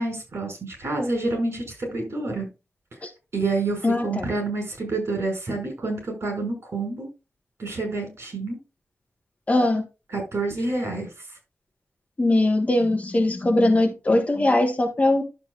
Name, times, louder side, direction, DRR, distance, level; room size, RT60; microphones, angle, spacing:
voice 1, 0.0-2.5 3.3-7.1 7.6-8.6 10.1-11.1, right 3 dB, 65° right, 5.7 m, -28 dB
voice 2, 3.8-4.3 9.5-9.8 12.2-15.2, left 2 dB, 30° left, 1.4 m, -21 dB
11.5 x 7.5 x 2.5 m
wide cardioid pair, 140°, 5 cm